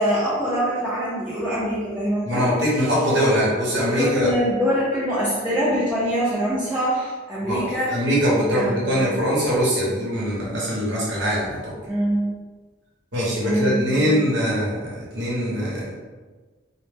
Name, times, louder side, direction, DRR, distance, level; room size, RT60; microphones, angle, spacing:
voice 1, 0.0-2.4 2.7-2.9 3.9-8.0 8.5-9.3 11.9-12.4 13.4-14.2, equal, 5° right, -10 dB, 0.4 m, -24 dB
voice 2, 2.2-4.3 7.4-7.6 7.9-11.7 13.1-15.9, equal, 75° right, -6 dB, 0.9 m, -22 dB
2.1 x 2.1 x 3.2 m, 1.3 s
head